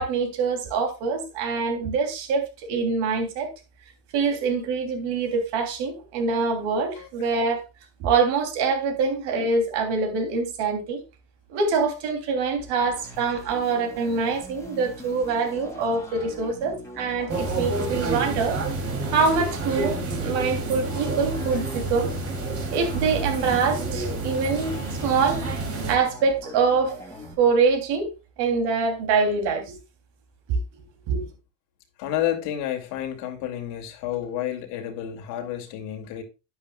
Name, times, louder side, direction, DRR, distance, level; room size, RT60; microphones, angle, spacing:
voice 1, 0.0-3.5 4.1-7.6 8.0-11.0 11.5-18.6 19.1-22.1 22.7-25.4 25.9-26.9 27.4-28.1 28.4-29.8 30.5-30.6 31.1-31.3, right 4 dB, 70° right, 3.2 m, -24 dB
sound 1, 12.6-27.3, left 1 dB, 5° left, 2.3 m, -43 dB
sound 2, 17.3-26.0, right 3 dB, 30° right, 3.0 m, -29 dB
voice 2, 32.0-36.2, left 11 dB, 80° left, 2.5 m, -30 dB
10.5 x 10.0 x 2.3 m
cardioid pair, 145°, 42 cm